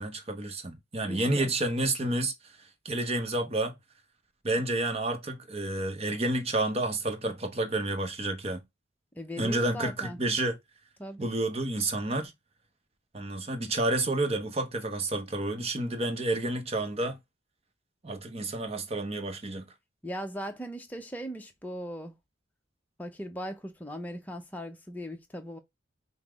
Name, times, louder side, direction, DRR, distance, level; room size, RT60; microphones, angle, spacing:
voice 1, 0.0-2.5 2.8-3.8 4.4-8.6 9.4-10.6 11.2-12.3 13.1-17.2 18.0-19.6, right 2 dB, 30° right, 0.8 m, -30 dB
voice 2, 1.0-1.5 9.1-10.2 11.0-11.3 20.0-22.1 23.0-25.6, equal, 10° left, 0.7 m, -39 dB
5.6 x 2.1 x 3.4 m
head